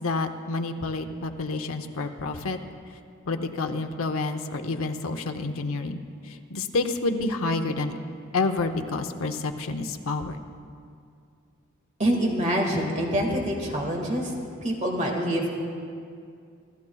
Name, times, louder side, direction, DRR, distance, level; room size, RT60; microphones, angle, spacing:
voice 1, 0.0-2.6 3.3-6.0 6.2-7.9 8.3-10.4, left 3 dB, 80° left, 6 dB, 0.7 m, -29 dB
voice 2, 12.0-14.3 14.6-15.5, equal, 35° right, 0 dB, 1.7 m, -25 dB
27.0 x 12.0 x 2.3 m, 2.3 s
head